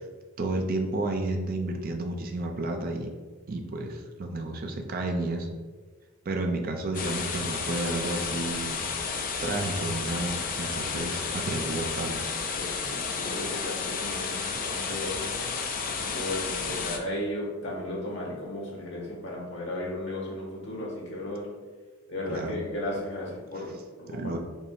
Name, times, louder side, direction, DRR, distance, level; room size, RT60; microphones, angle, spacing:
voice 1, 0.4-3.1 3.5-5.5 6.3-8.9 9.4-12.2 22.3-22.6 24.1-24.4, right 2 dB, 40° right, 3 dB, 0.4 m, -31 dB
sound 1, 6.9-17.0, left 5 dB, 40° left, 0.5 m, -32 dB
voice 2, 12.5-15.3 15.8-21.5 22.1-24.4, left 1 dB, 55° left, -3 dB, 1.4 m, -35 dB
5.3 x 2.0 x 4.6 m, 1.4 s
head